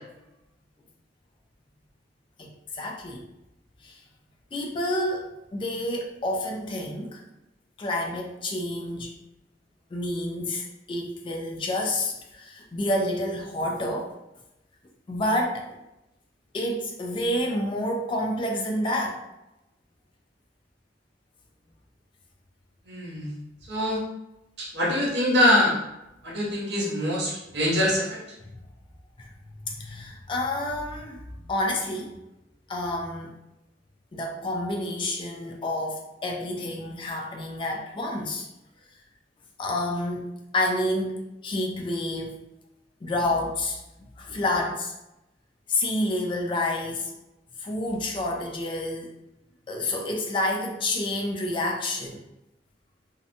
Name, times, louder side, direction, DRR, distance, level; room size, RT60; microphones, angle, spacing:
voice 1, 2.7-3.2 3.8-4.0 4.5-7.2 7.8-9.1 9.9-14.1 15.1-15.7 16.5-19.2 29.2-29.3 29.6-32.2 32.7-33.3 34.1-38.5 39.6-42.4 43.0-43.8 44.2-44.9 45.7-47.1 47.6-49.2 49.7-52.2, left 1 dB, 25° left, 1 dB, 0.3 m, -29 dB
voice 2, 22.9-23.3 23.7-24.0 24.6-25.8 26.2-28.2, left 1 dB, 65° right, -4 dB, 0.8 m, -24 dB
2.7 x 2.1 x 2.5 m, 0.91 s
head